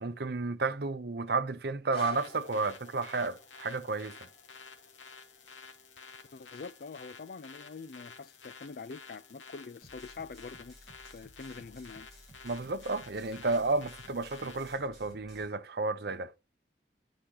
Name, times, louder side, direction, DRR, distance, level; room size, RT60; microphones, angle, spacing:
voice 1, 0.0-4.1 12.4-16.3, right 3 dB, 55° right, 0.7 m, -32 dB
sound 1, 1.6-7.7 8.4-8.5, left 2 dB, 25° left, 5.1 m, -50 dB
sound 2, 2.1-14.7, left 5 dB, 75° left, 1.7 m, -52 dB
voice 2, 6.3-10.7 11.1-12.1, left 4 dB, 55° left, 0.4 m, -45 dB
sound 3, 9.8-15.5, equal, ahead, 5.3 m, -56 dB
10.0 x 5.0 x 2.9 m
head